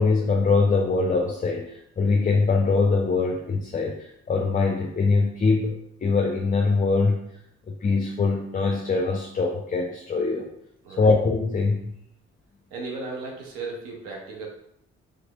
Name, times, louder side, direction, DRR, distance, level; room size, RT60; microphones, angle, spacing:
voice 1, 0.0-7.2 7.7-10.5 11.0-11.9, left 4 dB, 25° left, 2 dB, 0.5 m, -23 dB
voice 2, 10.8-11.2 12.7-14.5, right 3 dB, 80° right, -1 dB, 0.7 m, -35 dB
3.3 x 3.2 x 2.3 m, 0.75 s
hypercardioid pair, 40°, 33 cm